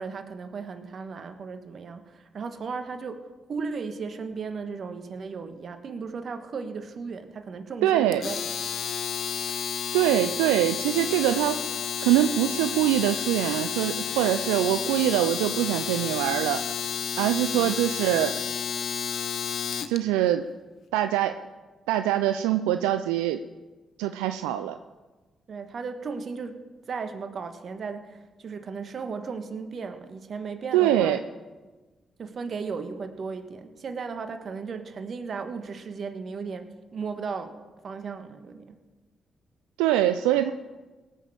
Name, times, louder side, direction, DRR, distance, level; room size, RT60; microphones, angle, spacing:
voice 1, 0.0-8.4 17.5-17.7 25.5-26.6 26.9-31.2 32.2-37.6 37.8-38.8, right 5 dB, 60° right, 8 dB, 1.4 m, -36 dB
voice 2, 7.8-8.3 9.9-11.6 12.0-16.6 17.2-18.3 19.9-20.4 20.9-21.4 21.9-23.4 24.0-24.8 30.7-31.2 39.8-40.5, right 12 dB, 90° right, 9 dB, 0.4 m, -23 dB
Domestic sounds home sounds, 8.1-20.0, left 8 dB, 65° left, 0.8 m, -31 dB
18.0 x 6.4 x 7.6 m, 1.2 s
supercardioid pair, 45°, 0 cm